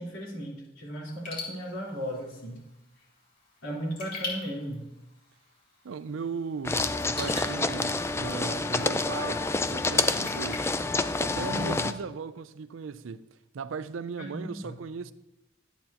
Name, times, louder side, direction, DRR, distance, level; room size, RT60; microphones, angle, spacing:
voice 1, 0.0-2.6 3.6-4.9 11.4-11.9 14.2-14.8, equal, 75° left, 3.7 m, -36 dB
Raindrop / Drip, 1.1-11.9, left 3 dB, 50° left, 3.5 m, -44 dB
voice 2, 5.8-9.4 9.7-10.7 11.2-13.2 13.5-15.1, right 5 dB, 85° right, 0.5 m, -37 dB
sound 1, 6.6-11.9, left 3 dB, 15° left, 0.3 m, -28 dB
12.0 x 9.1 x 2.9 m
head